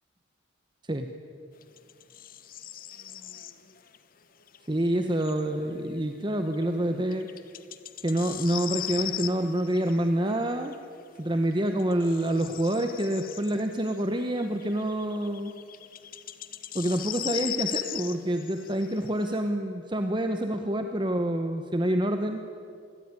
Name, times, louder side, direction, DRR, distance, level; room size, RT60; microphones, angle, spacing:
sound 1, 1.6-4.0 4.4-5.5 6.5-6.6 7.1-10.8 11.3-19.3, left 12 dB, 45° left, 1.1 m, -39 dB
voice 1, 4.7-7.3 8.0-10.8 11.2-15.5 16.7-22.4, right 1 dB, 25° right, 6 dB, 1.0 m, -27 dB
26.0 x 21.0 x 9.7 m, 2.5 s
head